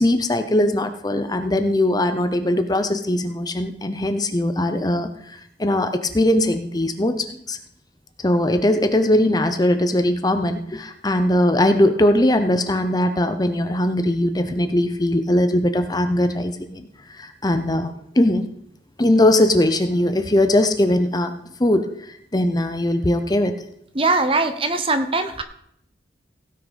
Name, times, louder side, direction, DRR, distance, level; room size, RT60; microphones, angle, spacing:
voice 1, 0.0-7.6 8.2-18.4 19.0-21.3 21.6-23.6, left 1 dB, 20° left, 8 dB, 0.7 m, -20 dB
voice 2, 23.9-25.4, right 3 dB, 30° right, 8 dB, 0.9 m, -21 dB
16.5 x 5.7 x 5.2 m, 0.71 s
head